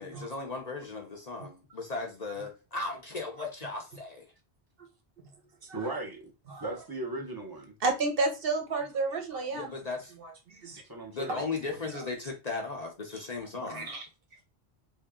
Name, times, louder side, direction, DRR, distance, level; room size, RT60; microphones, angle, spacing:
voice 1, 0.0-4.3 9.5-10.1 11.1-13.9, left 3 dB, 45° left, 0.7 m, -37 dB
voice 2, 5.7-6.3 6.6-7.7 10.9-11.4, right 2 dB, 25° right, 0.8 m, -37 dB
voice 3, 7.8-9.7 10.5-10.8 11.3-11.4 13.6-14.0, right 3 dB, 60° right, 1.1 m, -31 dB
3.1 x 2.7 x 3.6 m
omnidirectional pair, 1.1 m